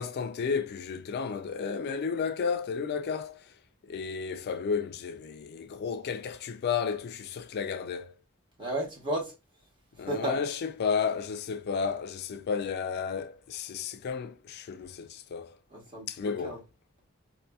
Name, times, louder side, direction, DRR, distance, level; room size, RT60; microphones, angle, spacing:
voice 1, 0.0-3.4 3.8-8.1 10.0-15.6 16.1-16.6, left 6 dB, 50° left, 0.3 m, -32 dB
voice 2, 8.6-9.3 10.0-10.4 15.7-16.6, right 1 dB, 25° right, 0.9 m, -33 dB
2.7 x 2.6 x 2.2 m
head